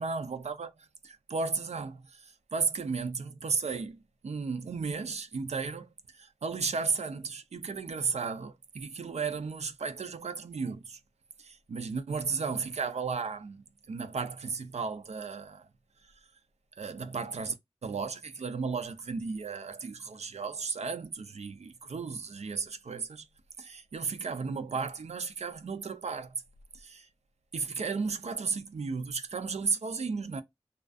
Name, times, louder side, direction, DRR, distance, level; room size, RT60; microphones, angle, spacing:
voice 1, 0.0-11.0 11.4-15.7 16.8-17.6 17.8-23.3 23.6-26.3 26.7-27.1 27.5-30.4, right 5 dB, 85° right, 0.4 m, -34 dB
2.4 x 2.3 x 2.4 m
wide cardioid pair, 40°, 11 cm